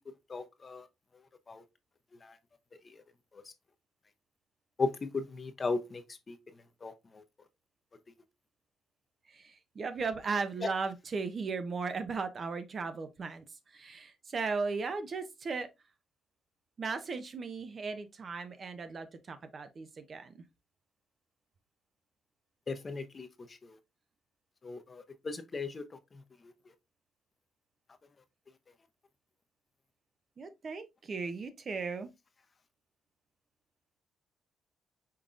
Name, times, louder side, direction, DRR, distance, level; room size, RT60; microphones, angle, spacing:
voice 1, 0.3-0.8 1.5-1.6 2.2-2.4 4.8-6.4 6.8-7.2 22.7-23.3 23.6-23.8 24.6-25.8, left 4 dB, 35° left, 0.8 m, -36 dB
voice 2, 9.3-15.7 16.8-20.4 30.4-32.1, right 4 dB, 45° right, 0.7 m, -37 dB
5.5 x 3.6 x 2.5 m
cardioid pair, 90°, 0 cm